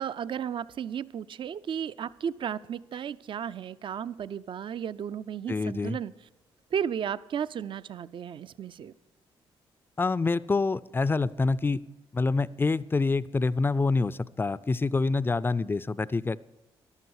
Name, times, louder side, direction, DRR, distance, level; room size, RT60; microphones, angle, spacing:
voice 1, 0.0-6.1 6.7-8.9, right 8 dB, 55° right, 17 dB, 0.4 m, -34 dB
voice 2, 5.5-6.0 10.0-11.8 12.1-16.4, left 3 dB, 20° left, 18 dB, 0.4 m, -26 dB
14.0 x 11.5 x 4.7 m, 1.0 s
cardioid pair, 70°, 10 cm